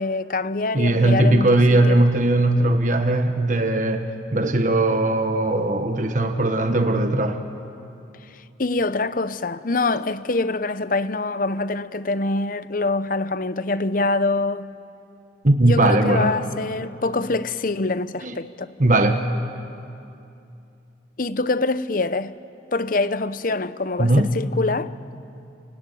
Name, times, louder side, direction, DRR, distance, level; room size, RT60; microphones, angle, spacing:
voice 1, 0.0-2.0 8.3-14.7 15.6-18.7 21.2-22.3 22.7-24.9, left 3 dB, 45° left, 0.7 m, -25 dB
voice 2, 0.7-7.4 15.4-16.3 18.2-18.3 18.8-19.3 24.0-24.3, right 1 dB, 40° right, 1.3 m, -19 dB
30.0 x 17.5 x 10.0 m
head